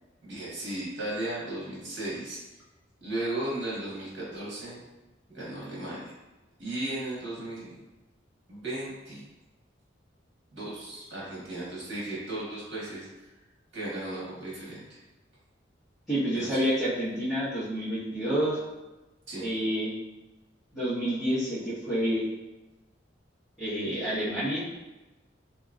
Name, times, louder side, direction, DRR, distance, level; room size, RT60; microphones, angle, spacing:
voice 1, 0.2-2.4 3.0-4.8 5.3-6.1 6.6-7.8 8.5-9.2 10.5-13.1 13.7-15.0 16.3-16.6 19.3-19.5, right 1 dB, 80° right, -6 dB, 1.4 m, -35 dB
voice 2, 16.1-18.6 19.4-19.9 20.7-22.3 23.6-24.6, equal, ahead, -20 dB, 1.4 m, -28 dB
3.0 x 2.8 x 2.5 m, 1.1 s
head